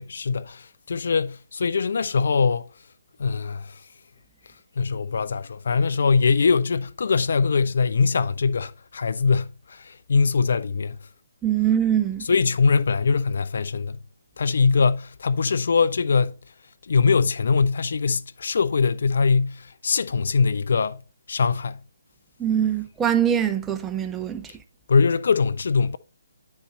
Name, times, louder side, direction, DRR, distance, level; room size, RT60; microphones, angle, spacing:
voice 1, 0.0-2.7 3.2-3.8 4.8-11.0 12.3-14.0 14.4-16.4 16.8-21.0 21.3-21.8 24.9-26.0, left 5 dB, 60° left, 0.3 m, -22 dB
voice 2, 11.4-12.3 22.4-24.5, right 9 dB, 10° right, 0.5 m, -23 dB
9.8 x 4.1 x 3.2 m
figure-of-eight pair, 140°, 0 cm